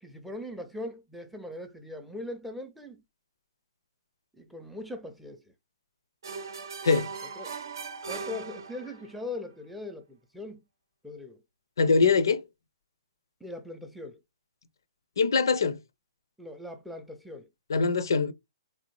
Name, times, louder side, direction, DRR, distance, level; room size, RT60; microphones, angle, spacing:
voice 1, 0.0-3.0 4.4-5.4 7.4-7.6 8.1-10.6 11.0-11.4 13.4-14.2 16.4-17.5, left 2 dB, ahead, 0.4 m, -40 dB
sound 1, 6.2-9.2, right 5 dB, 55° right, 0.6 m, -38 dB
voice 2, 11.8-12.4 15.2-15.8 17.7-18.3, left 4 dB, 60° left, 0.4 m, -23 dB
3.5 x 2.7 x 3.0 m
figure-of-eight pair, 120°, 2 cm